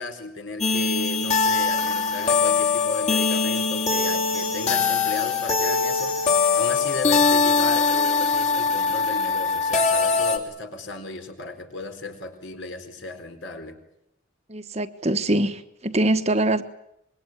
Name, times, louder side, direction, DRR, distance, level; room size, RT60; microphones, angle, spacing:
voice 1, 0.0-6.2 6.5-13.8, left 2 dB, 65° left, 4.1 m, -35 dB
sound 1, 0.6-10.4, left 4 dB, 35° left, 2.9 m, -22 dB
voice 2, 14.5-16.6, right 1 dB, 30° right, 1.2 m, -23 dB
25.5 x 22.5 x 9.2 m
head